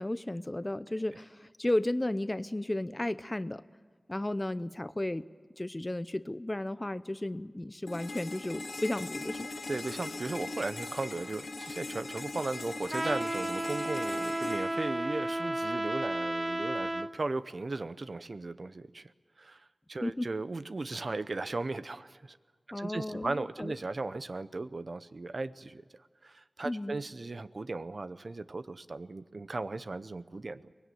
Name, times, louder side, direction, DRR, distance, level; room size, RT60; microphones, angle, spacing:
voice 1, 0.0-3.6 4.1-5.3 5.6-9.5 20.0-20.3 22.7-23.8 26.6-27.0, left 1 dB, 25° left, 14 dB, 0.6 m, -34 dB
sound 1, 7.9-15.8, left 3 dB, 80° left, 1.9 m, -41 dB
voice 2, 9.7-19.1 19.4-22.4 22.8-25.8 26.2-30.7, right 3 dB, 60° right, 13 dB, 0.7 m, -37 dB
Trumpet, 12.9-17.1, right 1 dB, 30° right, 1.0 m, -33 dB
23.0 x 20.0 x 9.3 m, 1.5 s
wide cardioid pair, 75°, 0 cm